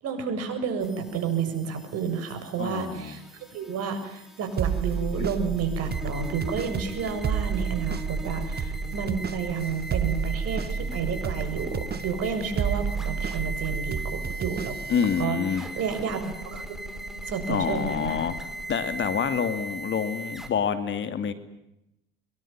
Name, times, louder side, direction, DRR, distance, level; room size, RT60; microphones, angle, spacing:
voice 1, 0.0-3.2 3.5-14.8 15.2-16.8 17.3-18.2, right 6 dB, 55° right, 8 dB, 7.3 m, -31 dB
sound 1, 0.8-20.5, right 1 dB, ahead, 4.9 m, -39 dB
voice 2, 2.6-3.2 5.2-5.3 14.9-15.7 17.5-18.4 18.7-21.3, left 7 dB, 40° left, 10 dB, 2.9 m, -27 dB
sound 2, 4.6-15.2, right 7 dB, 30° right, 1.5 m, -31 dB
25.0 x 22.5 x 9.1 m, 0.87 s
hypercardioid pair, 85°, 30 cm